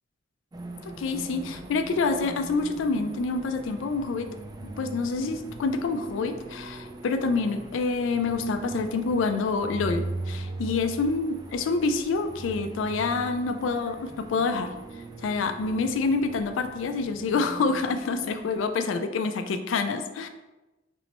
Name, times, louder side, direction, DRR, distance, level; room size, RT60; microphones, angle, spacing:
sound 1, 0.5-18.7, right 2 dB, 20° right, 0.3 m, -40 dB
voice 1, 1.0-4.3 4.8-14.7 15.2-20.3, left 4 dB, 80° left, 7 dB, 0.4 m, -27 dB
3.0 x 2.9 x 4.3 m, 1.1 s
head